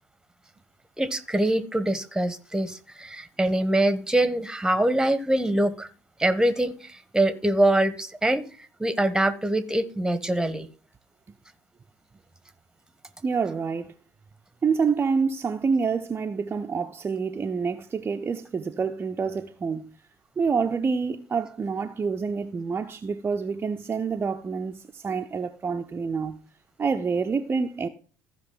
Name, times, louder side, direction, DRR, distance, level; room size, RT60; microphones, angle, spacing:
voice 1, 1.0-5.9 6.2-8.4 8.8-10.7, right 1 dB, 10° right, 1.1 m, -24 dB
voice 2, 13.2-13.9 14.6-19.9 20.4-26.4 26.8-27.9, right 5 dB, 30° right, 0.6 m, -27 dB
15.0 x 5.1 x 3.9 m
hypercardioid pair, 60°, 8 cm